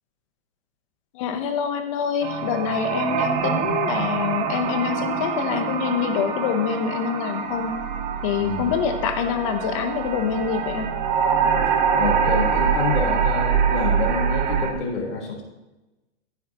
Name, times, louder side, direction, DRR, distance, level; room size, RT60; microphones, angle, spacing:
voice 1, 1.1-7.8 8.2-10.9, left 7 dB, 30° left, 7 dB, 0.9 m, -25 dB
sound 1, 2.2-14.7, right 6 dB, 40° right, 1.1 m, -24 dB
voice 2, 8.4-8.7 11.7-15.4, left 4 dB, 80° left, -2 dB, 3.9 m, -27 dB
15.0 x 8.6 x 2.9 m, 1.1 s
hypercardioid pair, 170°, 35 cm